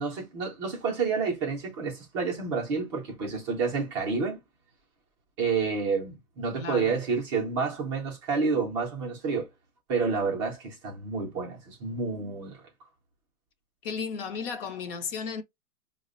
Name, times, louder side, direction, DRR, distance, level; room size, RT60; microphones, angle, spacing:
voice 1, 0.0-4.4 5.4-9.5 9.9-12.6, right 5 dB, 20° right, 0.5 m, -29 dB
voice 2, 6.6-7.0 13.8-15.4, left 5 dB, 40° left, 0.6 m, -34 dB
4.6 x 2.1 x 2.4 m
hypercardioid pair, 135°, 43 cm